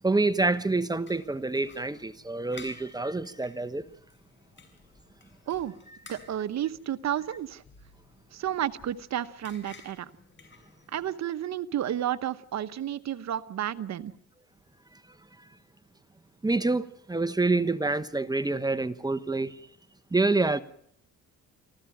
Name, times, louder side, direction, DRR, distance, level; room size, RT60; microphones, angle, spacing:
voice 1, 0.0-3.8 16.4-19.7 20.1-20.6, right 3 dB, 15° right, 1.1 m, -27 dB
sound 1, 1.1-11.1, left 4 dB, 40° left, 6.4 m, -54 dB
voice 2, 6.1-7.6 8.3-10.1 10.9-14.1, right 11 dB, 60° right, 1.0 m, -31 dB
25.5 x 15.5 x 9.0 m
cardioid pair, 90°, 30 cm